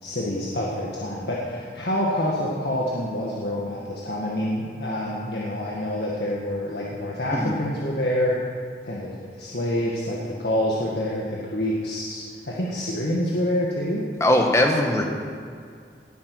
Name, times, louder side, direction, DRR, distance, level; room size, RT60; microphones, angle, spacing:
voice 1, 0.0-8.4 8.8-14.1, left 1 dB, 70° left, -4 dB, 1.8 m, -27 dB
voice 2, 14.2-15.0, left 1 dB, 15° left, 2 dB, 1.5 m, -20 dB
18.5 x 8.9 x 6.3 m, 2.2 s
head